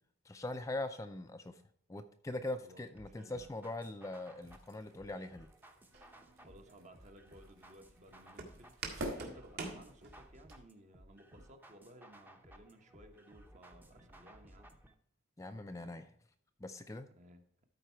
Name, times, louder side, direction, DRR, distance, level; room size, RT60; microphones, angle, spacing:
voice 1, 0.2-1.6 1.9-5.5 15.4-16.1 16.6-17.1, left 2 dB, 15° left, 7 dB, 0.4 m, -42 dB
voice 2, 2.6-3.5 6.4-14.7 17.1-17.4, right 1 dB, 35° right, 6 dB, 1.1 m, -58 dB
sound 1, 2.9-14.9, right 1 dB, 10° right, 0.8 m, -59 dB
sound 2, 4.2-10.2, right 1 dB, 70° right, 2.8 m, -50 dB
Walk footsteps, 5.9-10.5, right 3 dB, 50° right, 1.8 m, -47 dB
13.0 x 4.6 x 4.5 m, 0.67 s
head